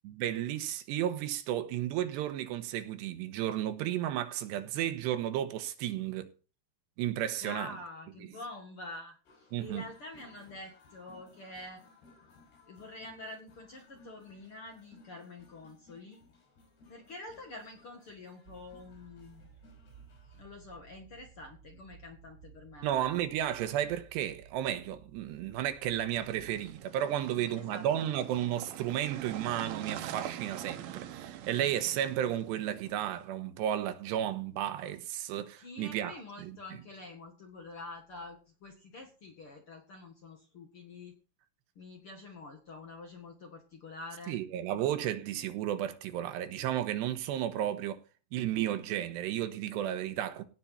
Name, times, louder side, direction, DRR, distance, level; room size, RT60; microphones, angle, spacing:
voice 1, 0.0-6.3 7.0-7.7 9.5-9.8 22.8-36.6 44.3-48.0 48.3-50.4, right 11 dB, 90° right, 3.3 m, -33 dB
voice 2, 7.4-11.8 12.7-16.2 16.9-19.5 20.4-22.9 27.1-28.1 35.6-41.1 41.8-44.4, left 2 dB, 50° left, 1.8 m, -47 dB
sound 1, 9.3-20.5, left 3 dB, 80° left, 7.9 m, -61 dB
sound 2, 18.4-26.7, right 8 dB, 40° right, 1.2 m, -56 dB
sound 3, 26.2-33.2, right 11 dB, 70° right, 2.7 m, -44 dB
17.0 x 5.7 x 5.8 m
omnidirectional pair, 4.8 m